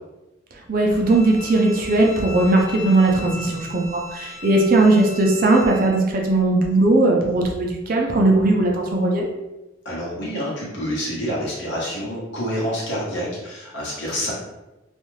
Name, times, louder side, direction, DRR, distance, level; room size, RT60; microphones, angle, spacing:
voice 1, 0.7-9.3, right 2 dB, 45° right, 0 dB, 0.5 m, -18 dB
Bowed string instrument, 1.0-5.9, left 2 dB, 45° left, 0.6 m, -38 dB
voice 2, 9.8-14.3, equal, 65° left, -6 dB, 1.0 m, -27 dB
2.5 x 2.3 x 3.1 m, 1.0 s
head